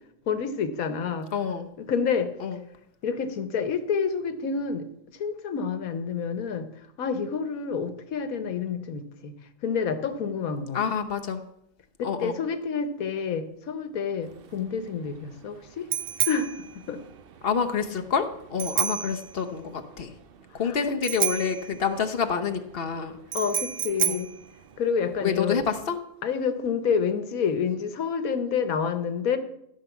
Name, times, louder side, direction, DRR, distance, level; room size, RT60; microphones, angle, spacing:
voice 1, 0.3-1.3 1.8-2.3 3.0-4.9 5.1-6.7 7.0-9.3 9.6-10.8 12.0-15.9 16.2-17.0 23.3-24.3 24.8-25.6 26.2-29.4, left 6 dB, 90° left, 11 dB, 1.5 m, -28 dB
voice 2, 1.3-1.7 2.4-2.6 10.7-11.4 12.0-12.4 17.4-20.1 20.5-23.1 24.0-24.2 25.2-26.0, left 6 dB, 45° left, 6 dB, 1.1 m, -28 dB
Bicycle bell, 14.2-25.4, right 9 dB, 55° right, 0.7 m, -32 dB
13.5 x 5.9 x 7.1 m, 0.78 s
omnidirectional pair, 1.4 m